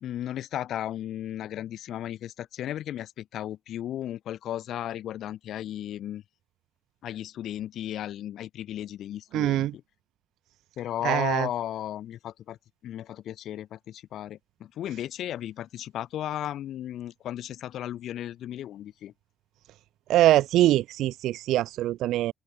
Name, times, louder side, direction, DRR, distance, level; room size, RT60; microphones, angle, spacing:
voice 1, 0.0-6.2 7.0-9.8 10.8-12.6 12.8-19.1, left 11 dB, 75° left, 2.7 m, -35 dB
voice 2, 9.3-9.7 11.0-11.5 20.1-22.3, right 14 dB, 85° right, 1.0 m, -23 dB
open air
cardioid pair, 90°, 0 cm